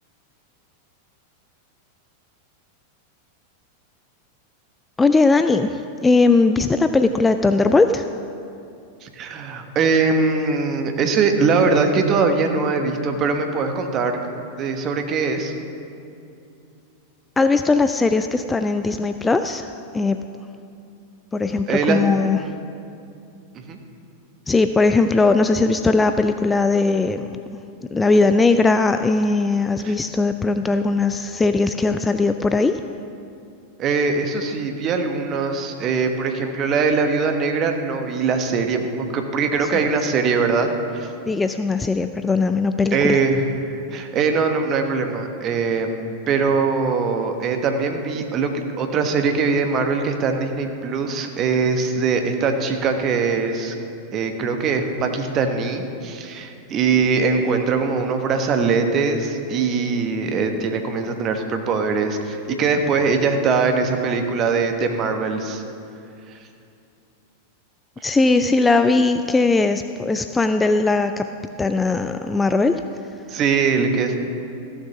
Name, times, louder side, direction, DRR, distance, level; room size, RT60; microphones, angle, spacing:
voice 1, 5.0-8.0 17.4-19.7 19.9-20.2 21.3-22.4 24.5-27.4 27.9-32.8 41.3-43.2 68.0-71.3 71.6-72.8, left 3 dB, 10° left, 9 dB, 0.3 m, -19 dB
voice 2, 9.0-14.2 14.6-15.5 21.7-22.0 23.7-23.8 29.8-29.9 33.8-41.1 42.9-53.7 54.1-65.6 73.3-74.2, right 4 dB, 30° right, 5 dB, 1.2 m, -22 dB
14.5 x 7.1 x 5.8 m, 2.6 s
figure-of-eight pair, 90°, 0 cm